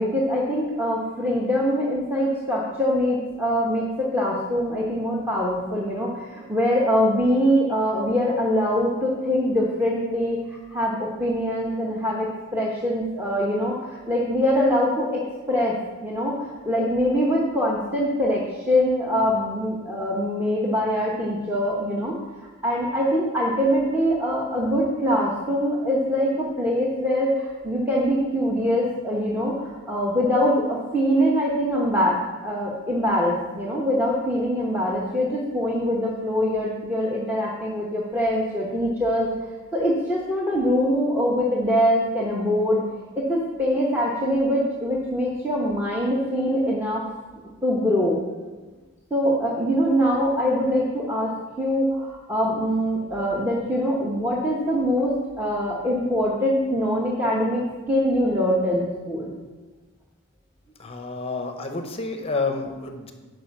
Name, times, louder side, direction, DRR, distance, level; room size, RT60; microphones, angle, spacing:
voice 1, 0.0-15.2 15.5-15.8 16.0-32.2 32.4-39.3 39.7-42.8 43.1-47.1 47.6-48.2 49.1-51.3 51.6-57.6 57.9-59.3, equal, 10° right, -4 dB, 1.0 m, -23 dB
voice 2, 60.8-63.1, left 3 dB, 30° left, 5 dB, 0.7 m, -29 dB
10.0 x 5.4 x 5.9 m, 1.3 s
head